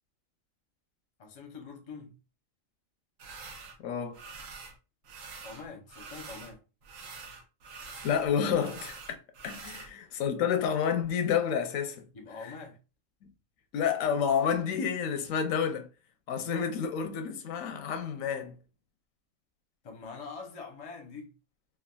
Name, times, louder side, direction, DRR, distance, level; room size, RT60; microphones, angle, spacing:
voice 1, 1.2-2.2 5.4-6.6 9.6-9.7 12.1-12.8 19.8-21.3, left 4 dB, 40° left, 0.5 m, -44 dB
sound 1, 3.2-3.8 4.1-4.8 5.0-6.5 6.8-9.9, right 4 dB, 80° right, 1.1 m, -46 dB
voice 2, 3.8-4.2 8.0-9.0 9.4-12.0 13.7-15.9 16.3-18.6, left 7 dB, 85° left, 1.0 m, -29 dB
3.4 x 2.2 x 2.2 m
omnidirectional pair, 1.4 m